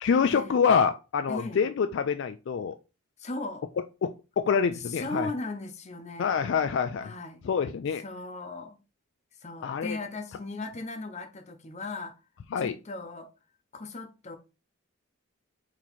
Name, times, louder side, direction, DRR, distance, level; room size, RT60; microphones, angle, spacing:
voice 1, 0.0-2.7 4.0-5.3 6.2-7.1 7.4-8.0 9.6-10.0 12.5-12.8, left 6 dB, 55° left, 0.3 m, -26 dB
voice 2, 1.3-1.7 3.2-3.7 4.7-6.3 7.0-7.4 8.0-8.8 9.4-12.1 12.6-13.3 13.7-14.4, left 2 dB, 30° left, 0.7 m, -37 dB
4.4 x 3.0 x 4.0 m
head